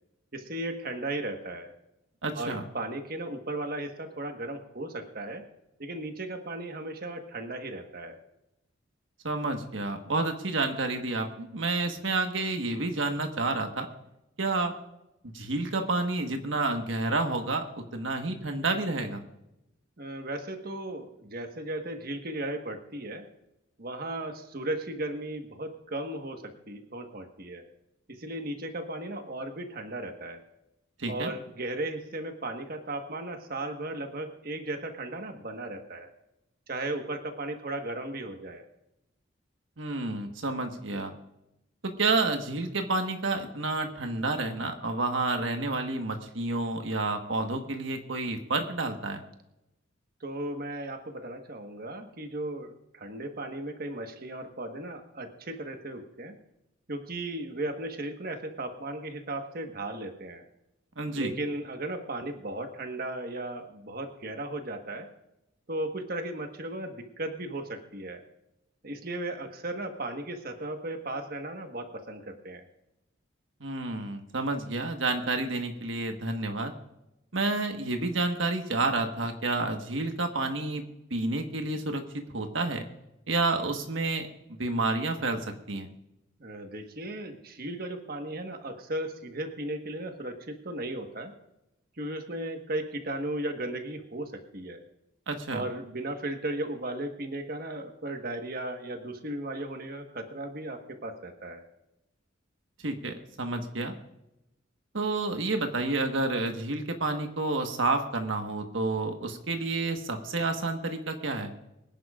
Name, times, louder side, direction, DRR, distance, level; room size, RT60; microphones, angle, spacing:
voice 1, 0.3-1.7 2.3-5.4 5.8-8.2 20.0-23.3 23.8-27.6 28.1-30.4 31.1-36.1 36.7-38.6 50.2-56.4 56.9-60.4 61.1-65.1 65.7-68.2 68.8-72.6 86.4-91.3 92.0-94.8 95.5-101.6, right 1 dB, 50° right, 5 dB, 1.4 m, -36 dB
voice 2, 2.2-2.6 9.2-13.9 14.4-14.7 15.3-17.6 17.9-19.2 31.0-31.3 39.8-41.1 41.8-49.2 61.0-61.3 73.6-76.7 77.3-80.8 81.1-82.0 82.3-82.8 83.3-85.9 95.3-95.6 102.8-103.9 104.9-111.5, right 2 dB, 70° right, 5 dB, 1.4 m, -29 dB
25.0 x 11.0 x 2.5 m, 0.88 s
head